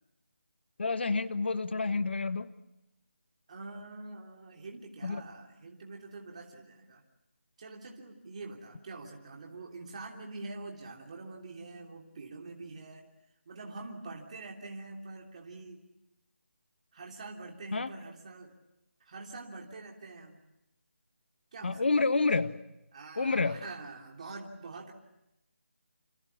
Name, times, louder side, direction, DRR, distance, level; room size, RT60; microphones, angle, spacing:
voice 1, 0.8-2.5 5.0-5.2 17.7-17.9 21.6-22.6 23.2-23.6, left 3 dB, 55° left, 12 dB, 1.5 m, -28 dB
voice 2, 3.5-7.0 7.6-13.1 13.4-15.8 16.9-18.6 19.0-20.4 21.5-22.1 22.9-24.9, right 3 dB, 30° right, 0 dB, 3.2 m, -45 dB
28.0 x 27.5 x 7.3 m, 0.91 s
figure-of-eight pair, 170°, 7 cm